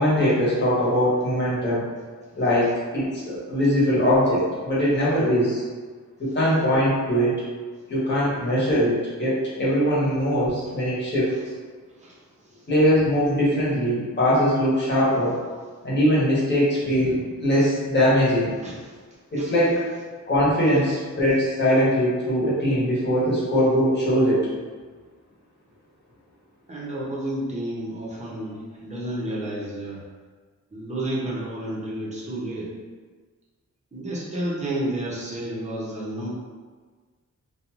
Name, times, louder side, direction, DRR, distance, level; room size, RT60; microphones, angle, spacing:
voice 1, 0.0-1.8 2.4-5.6 6.2-7.4 7.9-11.3 12.7-15.4 15.8-18.5 19.3-19.8 20.3-24.4, equal, 35° left, -8 dB, 1.0 m, -21 dB
voice 2, 26.7-30.0 30.7-32.7 33.9-36.3, right 1 dB, 20° right, -6 dB, 0.6 m, -31 dB
2.5 x 2.3 x 2.9 m, 1.5 s
wide cardioid pair, 160°, 32 cm